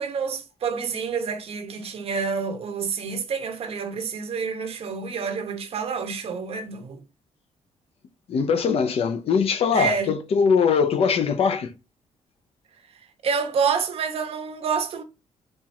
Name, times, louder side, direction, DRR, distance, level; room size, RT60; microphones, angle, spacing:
voice 1, 0.0-7.0 9.7-10.1 13.2-15.0, right 6 dB, 60° right, 0.8 m, -28 dB
voice 2, 8.3-11.7, left 6 dB, 60° left, 0.6 m, -21 dB
4.4 x 2.4 x 4.3 m
cardioid pair, 105°, 11 cm